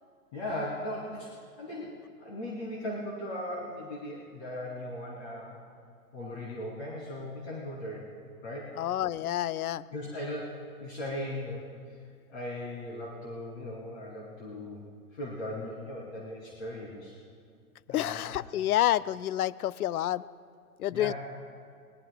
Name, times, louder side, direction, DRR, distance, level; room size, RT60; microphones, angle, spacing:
voice 1, 0.3-5.6 6.1-8.1 8.4-8.7 9.9-12.0 12.3-14.8 15.1-17.2 17.9-18.3 20.9-21.1, left 1 dB, 45° left, -4 dB, 3.1 m, -38 dB
voice 2, 8.8-9.8 17.9-20.2 20.8-21.1, left 13 dB, 75° left, 19 dB, 0.5 m, -28 dB
22.0 x 20.0 x 2.3 m, 2.3 s
hypercardioid pair, 125°, 45 cm